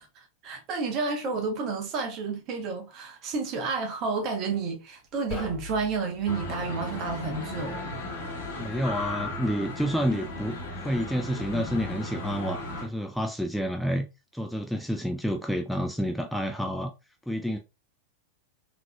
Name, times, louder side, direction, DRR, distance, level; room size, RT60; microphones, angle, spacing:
voice 1, 0.0-7.8, right 4 dB, 40° right, 1.0 m, -31 dB
sound 1, 5.1-6.8, left 3 dB, 35° left, 1.4 m, -40 dB
sound 2, 6.3-12.9, left 1 dB, 55° left, 1.0 m, -35 dB
voice 2, 8.5-14.1 14.3-16.9 17.3-17.6, equal, ahead, 0.3 m, -29 dB
3.8 x 2.9 x 2.3 m
figure-of-eight pair, 90°, 0 cm